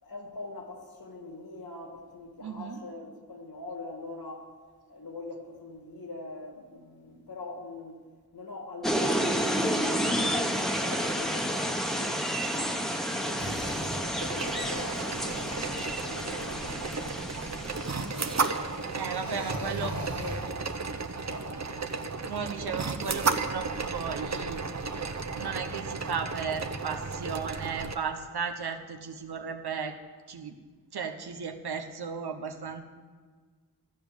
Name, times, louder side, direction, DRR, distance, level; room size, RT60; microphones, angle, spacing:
voice 1, 0.0-4.5 4.9-8.0 8.3-12.7 13.1-15.5 15.9-17.0 17.9-20.4 21.3-22.2, left 2 dB, 70° left, 2 dB, 2.0 m, -43 dB
voice 2, 2.4-2.8 18.9-19.9 20.2-20.4 22.3-24.6 25.3-29.9 30.3-30.5 30.9-32.8, right 6 dB, 85° right, 5 dB, 1.0 m, -35 dB
sound 1, 8.8-18.6, equal, ahead, 1.1 m, -30 dB
sound 2, 13.4-20.8, right 2 dB, 65° right, 1.6 m, -43 dB
sound 3, 14.2-27.9, right 4 dB, 45° right, 0.8 m, -34 dB
13.0 x 5.3 x 9.1 m, 1.5 s
cardioid pair, 40°, 37 cm